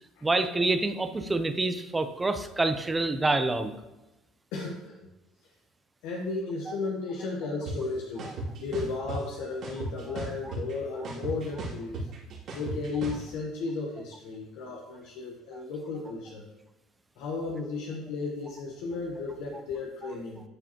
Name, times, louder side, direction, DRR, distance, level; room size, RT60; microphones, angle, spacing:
voice 1, 0.2-3.7, right 2 dB, 15° right, 9 dB, 0.6 m, -27 dB
voice 2, 4.5-5.1 6.0-12.1 12.5-16.4 17.2-20.4, left 3 dB, 80° left, -1 dB, 1.0 m, -34 dB
sound 1, 7.7-7.8 8.2-9.2 9.6-10.7 11.0-13.2, right 2 dB, 60° right, 2.4 m, -35 dB
11.0 x 4.8 x 2.9 m, 1.0 s
supercardioid pair, 100°, 0 cm